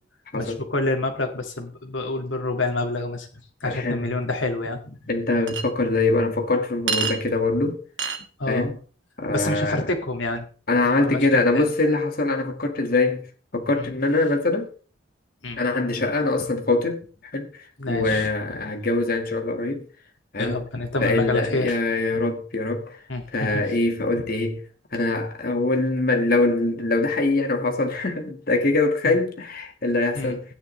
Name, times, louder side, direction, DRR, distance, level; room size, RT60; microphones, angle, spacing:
voice 1, 0.3-3.3 3.6-5.0 8.4-8.7 9.3-10.4 11.0-11.7 13.7-13.9 15.4-15.6 17.8-18.3 20.4-21.8 23.1-23.6 29.0-29.2 30.1-30.3, left 2 dB, 85° left, 2.2 m, -27 dB
voice 2, 3.6-4.1 5.1-7.8 8.5-8.8 9.2-9.9 10.7-13.2 13.5-14.7 15.6-17.1 17.3-17.5 17.9-19.9 20.3-20.6 21.0-23.0 23.3-24.6 24.9-30.4, left 2 dB, 50° left, 1.9 m, -23 dB
Chink clink, 5.5-5.6 6.9-7.2 8.0-8.2, right 5 dB, 75° right, 1.8 m, -25 dB
14.0 x 9.7 x 3.3 m
head